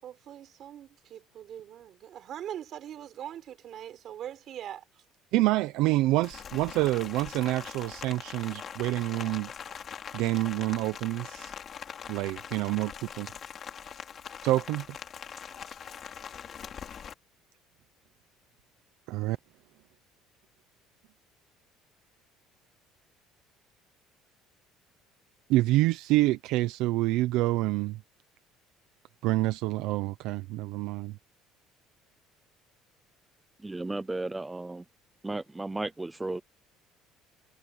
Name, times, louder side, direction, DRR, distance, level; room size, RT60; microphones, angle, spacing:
voice 1, 0.0-4.8, right 10 dB, 40° right, 4.1 m, -42 dB
voice 2, 5.3-9.8 10.1-11.5 12.1-13.3 14.4-14.9 19.1-19.4 25.5-28.0 29.2-31.2, right 18 dB, 70° right, 0.7 m, -27 dB
Rain, 6.2-17.1, left 8 dB, 30° left, 3.6 m, -42 dB
voice 3, 33.6-34.8 35.2-36.4, right 2 dB, 10° right, 0.5 m, -34 dB
cardioid pair, 165°, 0 cm